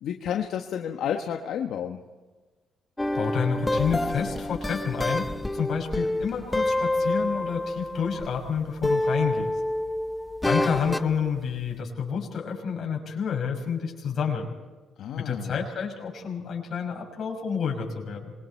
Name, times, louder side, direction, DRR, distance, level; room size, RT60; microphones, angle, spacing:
voice 1, 0.0-2.0 15.0-15.6, left 8 dB, 75° left, 4 dB, 1.4 m, -31 dB
sound 1, 3.0-8.5 8.8-11.1, left 1 dB, 10° left, 0.8 m, -28 dB
voice 2, 3.1-9.5 10.4-14.5 15.2-18.3, left 6 dB, 55° left, 1 dB, 6.3 m, -29 dB
26.5 x 23.0 x 4.6 m, 1.3 s
cardioid pair, 90°, 0 cm